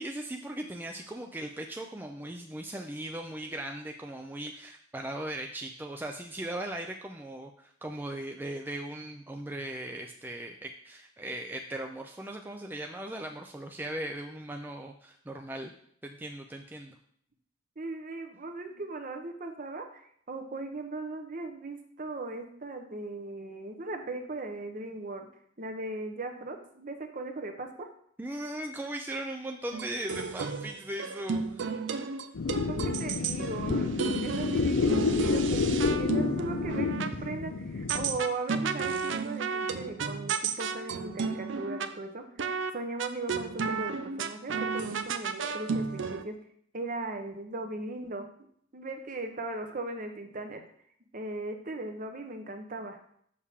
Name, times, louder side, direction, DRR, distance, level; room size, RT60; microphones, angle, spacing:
voice 1, 0.0-15.7 16.0-17.0 28.2-31.7, right 1 dB, 10° right, 3 dB, 0.4 m, -38 dB
voice 2, 17.8-25.3 25.6-27.9 32.4-33.9 34.2-46.3 46.7-48.3 48.7-50.6 51.1-53.0, right 2 dB, 45° right, 5 dB, 0.9 m, -38 dB
sound 1, 29.7-37.1 37.9-41.9 42.4-42.7 43.0-46.2, right 5 dB, 70° right, 0.5 m, -33 dB
sound 2, 32.3-38.2, left 4 dB, 75° left, 0.5 m, -29 dB
7.0 x 6.5 x 3.6 m, 0.65 s
head